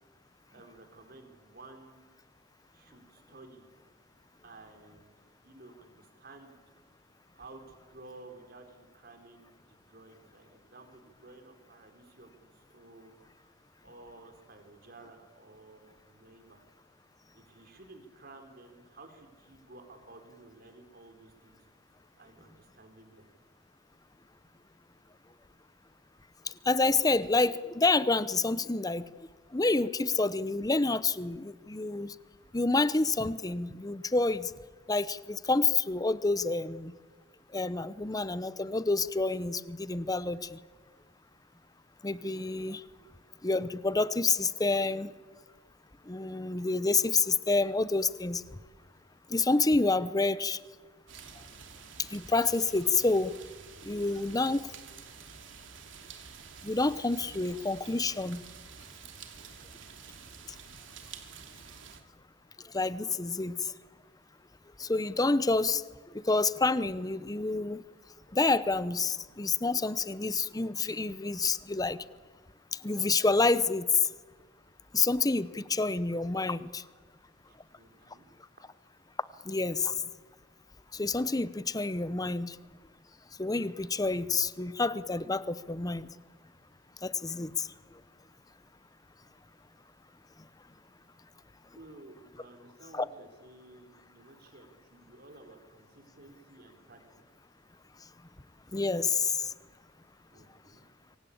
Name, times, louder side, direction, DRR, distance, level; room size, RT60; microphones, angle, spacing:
voice 1, 0.5-2.0 2.7-3.7 4.4-6.6 7.3-13.5 13.8-16.6 17.3-21.6 22.2-23.3 43.0-43.1 77.5-78.3 91.7-97.0 100.3-100.8, right 2 dB, 55° right, 5 dB, 4.1 m, -53 dB
voice 2, 26.7-29.0 29.5-32.1 32.5-34.5 34.9-36.9 37.5-40.6 42.0-42.8 43.4-45.1 46.1-48.4 49.3-50.6 52.1-53.3 53.8-54.7 56.6-58.4 62.7-63.5 64.8-65.8 66.3-67.8 68.3-72.0 72.8-73.9 74.9-76.8 79.5-79.9 80.9-82.5 83.4-86.1 87.0-87.7 92.9-93.0 98.7-99.3, left 3 dB, 20° left, 15 dB, 0.8 m, -28 dB
sound 1, 51.1-62.0, right 6 dB, 80° right, 2.8 m, -49 dB
26.0 x 23.5 x 8.7 m, 1.4 s
head